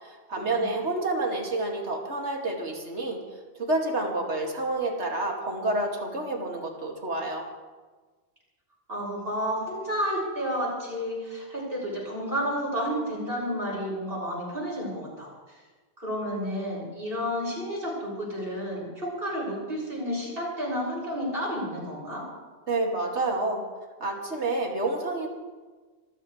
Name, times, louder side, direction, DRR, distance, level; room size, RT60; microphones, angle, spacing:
voice 1, 0.0-3.2 3.6-7.5 22.7-23.6 24.0-25.3, right 2 dB, 80° right, 0 dB, 2.8 m, -29 dB
voice 2, 8.9-15.6 16.0-22.2, equal, 55° right, -5 dB, 7.4 m, -31 dB
27.0 x 14.5 x 3.4 m, 1.4 s
omnidirectional pair, 1.1 m